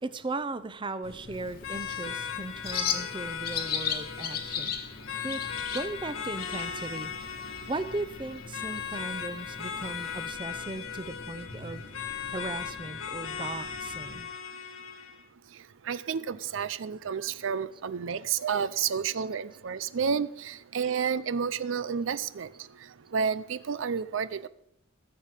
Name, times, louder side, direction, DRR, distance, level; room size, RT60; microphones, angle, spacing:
voice 1, 0.0-4.8 5.2-5.4 5.7-11.9 12.3-14.3, right 2 dB, 25° right, 13 dB, 0.6 m, -37 dB
sound 1, 1.0-14.3, left 1 dB, 65° left, 1.5 m, -47 dB
Bird, 1.3-10.3, left 8 dB, 50° left, 1.5 m, -37 dB
sound 2, 1.6-15.2, left 8 dB, 85° left, 1.5 m, -38 dB
voice 2, 15.9-22.5 23.1-24.5, right 6 dB, 70° right, 16 dB, 0.5 m, -30 dB
15.0 x 7.3 x 6.5 m, 0.78 s
head